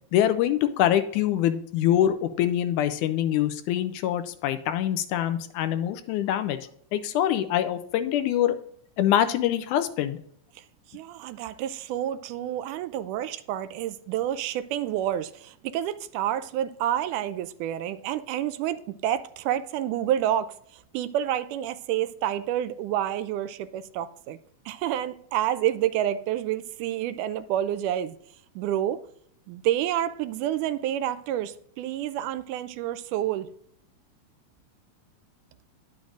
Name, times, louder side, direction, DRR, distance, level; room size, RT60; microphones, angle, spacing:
voice 1, 0.1-6.6 6.9-8.6 9.0-10.2, left 11 dB, 80° left, 2.0 m, -24 dB
voice 2, 10.9-20.5 20.9-24.4 24.7-28.2 28.6-29.0 29.5-33.5, right 11 dB, 80° right, 2.0 m, -29 dB
10.5 x 7.1 x 2.5 m
omnidirectional pair, 3.6 m